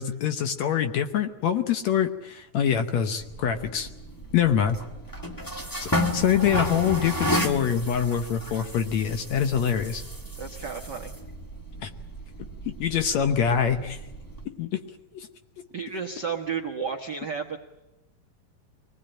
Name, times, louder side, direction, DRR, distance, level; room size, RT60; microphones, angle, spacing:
voice 1, 0.0-3.9 4.3-4.8 5.8-10.0 11.8-11.9 12.7-14.0 14.5-14.8 15.1-15.3, left 8 dB, 65° left, 8 dB, 1.9 m, -25 dB
sound 1, 3.2-14.4, left 1 dB, 15° left, 0.6 m, -33 dB
voice 2, 10.4-11.1 15.7-17.6, right 6 dB, 70° right, 3 dB, 1.0 m, -32 dB
23.5 x 19.5 x 8.8 m, 1.0 s
omnidirectional pair, 3.9 m